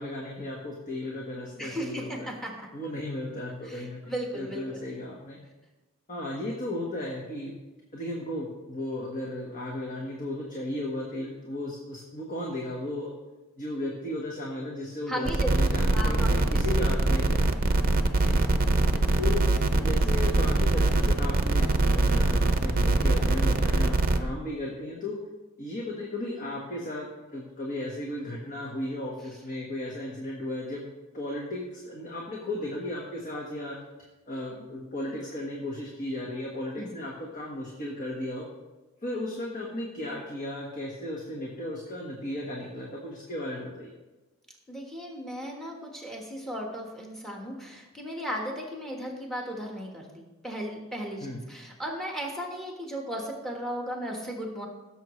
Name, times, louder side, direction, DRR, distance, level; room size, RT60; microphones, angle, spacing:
voice 1, 0.0-2.3 2.7-5.4 6.1-7.5 7.9-13.1 13.6-17.5 19.2-25.2 25.6-30.8 31.1-33.7 34.3-38.5 39.0-43.9 51.2-51.4, left 1 dB, 40° left, -2 dB, 1.4 m, -35 dB
voice 2, 1.6-2.7 3.6-4.8 15.1-15.5 15.9-16.6 18.2-18.6 18.9-19.1 36.8-36.9 44.7-54.7, equal, ahead, 0 dB, 1.5 m, -36 dB
sound 1, 15.3-24.2, right 2 dB, 40° right, 0.7 m, -23 dB
16.0 x 7.1 x 3.2 m, 1.1 s
head